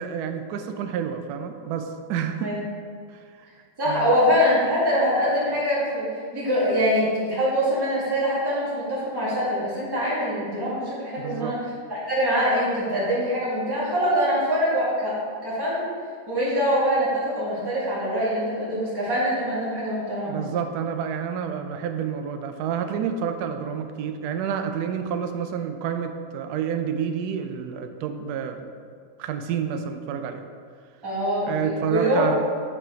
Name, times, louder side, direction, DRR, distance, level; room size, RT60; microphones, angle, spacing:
voice 1, 0.0-2.5 3.4-3.5 3.9-4.2 11.2-11.6 20.2-28.6 29.2-30.4 31.4-32.5, right 7 dB, 70° right, 6 dB, 1.0 m, -29 dB
voice 2, 3.8-6.1 6.3-11.6 11.9-15.9 16.3-20.4 31.0-32.3, equal, 10° right, -9 dB, 1.9 m, -24 dB
8.4 x 4.4 x 4.4 m, 2.1 s
omnidirectional pair, 1.9 m